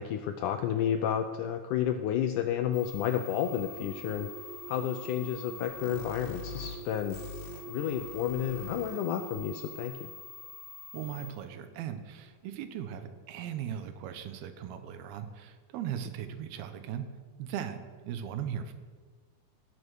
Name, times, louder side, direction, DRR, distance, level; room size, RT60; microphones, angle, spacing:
voice 1, 0.0-4.3 4.7-7.3 7.7-10.1, left 10 dB, 85° left, 7 dB, 1.8 m, -31 dB
sound 1, 2.7-11.3, left 5 dB, 40° left, 0.9 m, -45 dB
sound 2, 3.3-9.7, right 8 dB, 60° right, 3.5 m, -47 dB
voice 2, 10.9-17.1 17.4-17.8 18.0-18.7, right 9 dB, 85° right, 9 dB, 2.9 m, -38 dB
17.5 x 6.8 x 6.3 m, 1.5 s
omnidirectional pair, 4.3 m